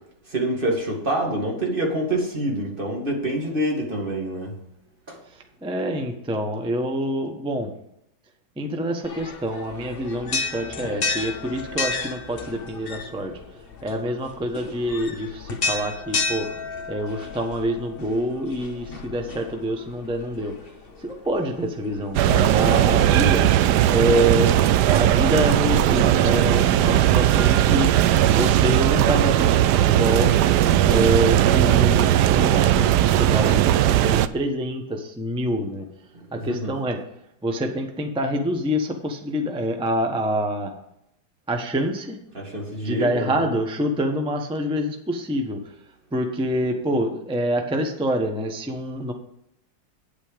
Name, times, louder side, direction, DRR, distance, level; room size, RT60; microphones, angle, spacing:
voice 1, 0.3-4.5 5.1-5.2 22.5-23.1 36.3-36.7 42.3-43.5, right 1 dB, 25° right, 0 dB, 2.3 m, -26 dB
voice 2, 5.6-7.7 8.6-13.3 13.8-16.5 16.9-20.5 21.0-23.5 23.9-27.9 28.3-30.3 30.8-35.8 36.3-37.0 37.4-40.7 41.5-42.2 42.8-45.6 46.1-49.1, right 1 dB, 5° right, 4 dB, 0.6 m, -26 dB
sound 1, 9.0-23.5, left 4 dB, 45° left, 0.8 m, -33 dB
sound 2, 22.1-34.3, right 12 dB, 90° right, 0.9 m, -18 dB
9.5 x 8.3 x 5.1 m, 0.78 s
omnidirectional pair, 2.3 m